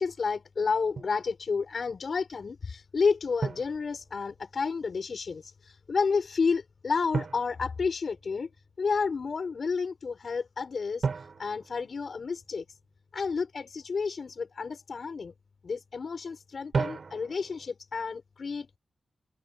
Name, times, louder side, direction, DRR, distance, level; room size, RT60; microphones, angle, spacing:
voice 1, 0.0-8.5 8.8-11.1 11.4-12.6 13.1-15.3 15.6-18.8, left 5 dB, 45° left, 7.3 m, -30 dB
Drum, 1.0-1.2 3.4-4.6 7.1-8.5 11.0-12.7 16.7-17.7, right 5 dB, 45° right, 5.7 m, -35 dB
open air
wide cardioid pair, 155°, 0 cm